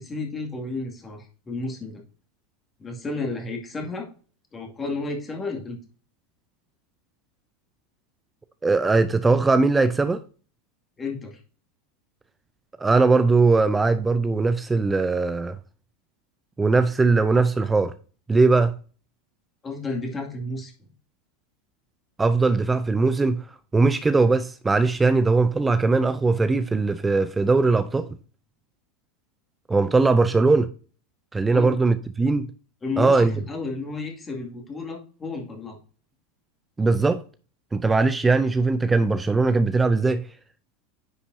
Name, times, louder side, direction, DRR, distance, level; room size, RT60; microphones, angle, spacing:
voice 1, 0.0-2.0 2.8-4.1 4.5-5.8 11.0-11.4 19.6-20.7 31.5-31.8 32.8-35.8, left 3 dB, 20° left, 2.2 m, -32 dB
voice 2, 8.6-10.2 12.8-15.6 16.6-17.9 18.3-18.7 22.2-23.4 23.7-28.1 29.7-30.7 31.3-32.5 33.0-33.3 36.8-37.2 37.7-40.3, right 3 dB, 15° right, 0.5 m, -20 dB
9.8 x 5.5 x 2.7 m
figure-of-eight pair, 85°, 0 cm